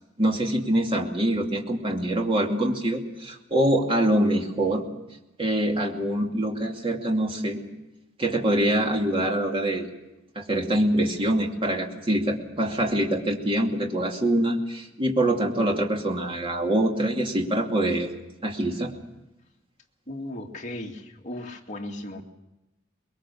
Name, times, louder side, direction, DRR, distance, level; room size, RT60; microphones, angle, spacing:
voice 1, 0.2-4.8 5.4-7.6 8.2-9.9 10.4-18.1 18.4-18.9, right 1 dB, 30° right, 1 dB, 2.6 m, -24 dB
voice 2, 20.1-22.2, left 1 dB, 40° left, 0 dB, 2.3 m, -36 dB
24.0 x 21.5 x 7.1 m, 0.98 s
head